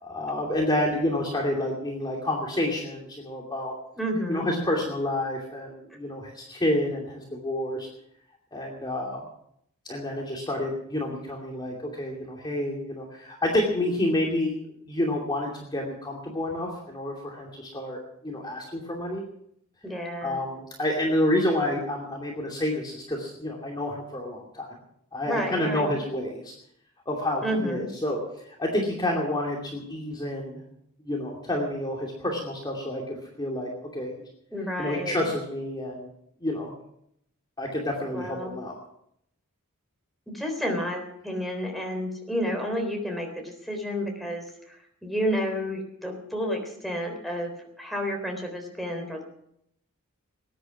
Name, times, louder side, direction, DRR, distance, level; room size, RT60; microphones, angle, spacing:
voice 1, 0.0-3.7 4.3-7.9 8.5-9.2 9.8-14.5 14.9-19.2 20.2-24.8 25.1-26.5 27.1-28.2 28.6-30.6 31.0-34.1 34.8-36.1 36.4-36.8 37.6-38.7, left 1 dB, 20° left, -2 dB, 2.6 m, -29 dB
voice 2, 4.0-4.4 19.8-20.4 25.3-25.9 27.4-27.8 34.5-35.3 38.1-38.6 40.3-47.5 47.8-49.2, equal, ahead, 1 dB, 3.7 m, -30 dB
20.5 x 10.5 x 5.9 m, 0.73 s
head